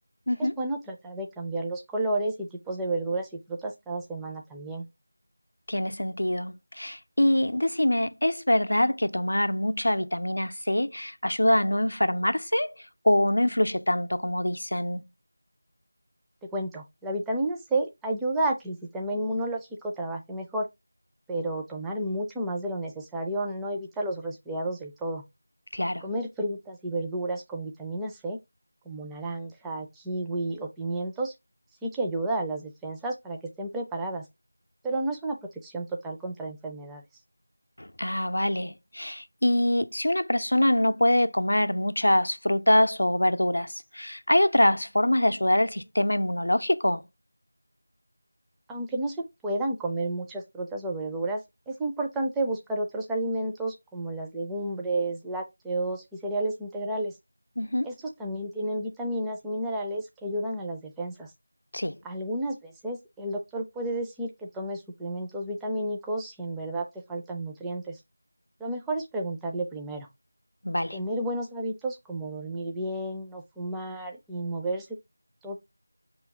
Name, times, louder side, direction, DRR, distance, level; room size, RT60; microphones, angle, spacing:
voice 1, 0.4-4.9 16.5-20.7 21.3-25.2 26.0-28.4 28.9-31.3 31.8-34.3 34.8-35.4 35.6-37.0 48.7-49.2 49.4-51.4 51.7-57.1 57.8-57.9 58.2-61.3 62.0-68.0 68.6-70.1 70.9-74.9 75.4-75.6, right 1 dB, 5° right, 0.4 m, -31 dB
voice 2, 5.7-12.7 13.0-15.0 25.7-26.0 37.8-47.0 57.6-57.9 61.7-62.0 70.6-71.0, left 1 dB, 85° left, 0.5 m, -24 dB
4.3 x 3.1 x 3.5 m
figure-of-eight pair, 175°, 0 cm